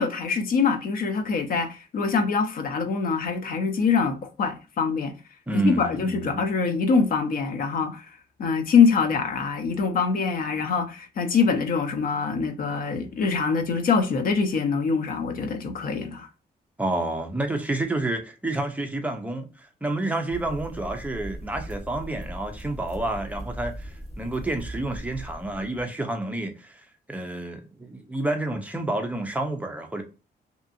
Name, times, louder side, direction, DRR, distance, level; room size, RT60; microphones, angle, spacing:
voice 1, 0.0-5.2 5.5-8.1 8.4-16.3, left 5 dB, 55° left, 0.6 m, -24 dB
voice 2, 5.5-6.4 16.8-30.0, right 2 dB, 10° right, 0.5 m, -29 dB
sound 1, 20.3-25.8, right 1 dB, 35° left, 1.4 m, -39 dB
2.7 x 2.5 x 2.5 m
wide cardioid pair, 150°, 17 cm